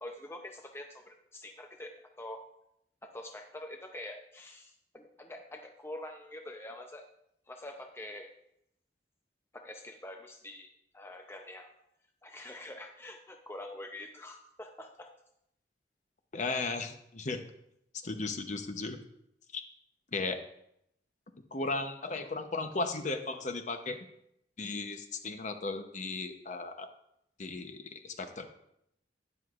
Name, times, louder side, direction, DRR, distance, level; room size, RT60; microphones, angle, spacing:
voice 1, 0.0-2.4 3.0-7.1 7.5-8.3 9.5-11.7 12.2-15.1, left 1 dB, 15° left, 3 dB, 0.6 m, -45 dB
voice 2, 16.3-17.4 18.0-19.0 19.5-19.6 20.1-20.4 21.5-24.0 24.6-26.9 27.4-28.5, left 3 dB, 45° left, 7 dB, 0.8 m, -35 dB
12.5 x 9.8 x 2.5 m, 0.78 s
head